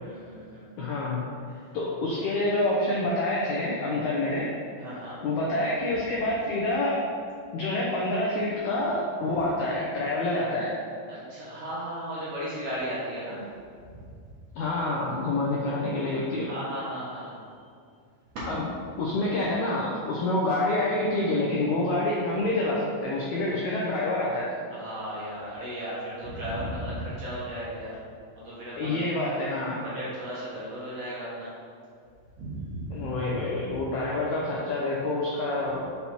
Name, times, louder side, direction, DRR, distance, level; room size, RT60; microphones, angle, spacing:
voice 1, 0.0-0.7 1.5-1.7 4.8-5.2 11.1-13.5 14.0-14.1 16.0-17.4 24.7-28.0 28.4-29.0 29.8-31.5 32.4-33.2, equal, 55° right, -8 dB, 2.0 m, -36 dB
voice 2, 0.8-1.2 1.7-4.5 5.2-7.0 7.5-10.8 14.6-16.5 18.5-18.6 19.0-24.6 28.7-29.8 32.9-35.9, left 2 dB, 80° left, -4 dB, 1.7 m, -27 dB
5.8 x 5.5 x 4.4 m, 2.3 s
omnidirectional pair, 4.4 m